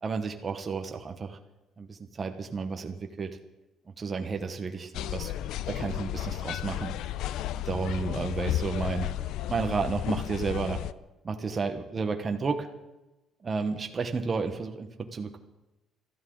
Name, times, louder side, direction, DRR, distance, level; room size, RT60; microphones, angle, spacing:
voice 1, 0.0-1.4 1.8-3.4 4.0-5.3 5.7-7.0 7.7-9.1 9.5-10.8 11.2-12.7 13.4-15.4, right 4 dB, 25° right, 4 dB, 1.0 m, -32 dB
sound 1, 4.9-10.9, left 13 dB, 75° left, 0.4 m, -33 dB
21.5 x 13.5 x 3.9 m, 1.0 s
cardioid pair, 160°, 0 cm